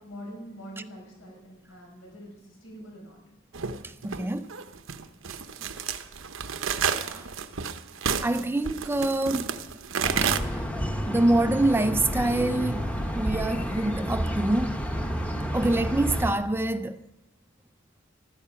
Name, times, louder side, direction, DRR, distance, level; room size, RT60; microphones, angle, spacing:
voice 1, 0.0-3.2, equal, 75° left, 5.1 m, -44 dB
sound 1, 3.5-10.4, right 6 dB, 75° right, 0.9 m, -30 dB
voice 2, 3.8-4.5 6.8-7.2 8.2-9.5 10.2-10.6 11.0-14.8 15.5-17.0, right 2 dB, 10° right, 0.4 m, -26 dB
sound 2, 10.0-16.3, equal, 5° left, 1.1 m, -30 dB
14.5 x 12.5 x 5.7 m
head